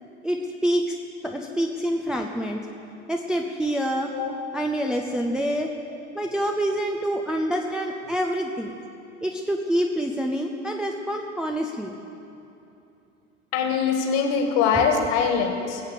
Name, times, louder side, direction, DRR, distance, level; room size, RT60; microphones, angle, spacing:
voice 1, 0.2-1.0 1.2-2.7 3.1-4.1 4.5-5.7 6.1-8.7 9.2-11.9 14.7-14.8, equal, ahead, 1 dB, 0.6 m, -26 dB
voice 2, 13.5-15.8, left 6 dB, 40° left, 4 dB, 2.0 m, -22 dB
20.5 x 8.2 x 6.6 m, 2.8 s
figure-of-eight pair, 85°, 39 cm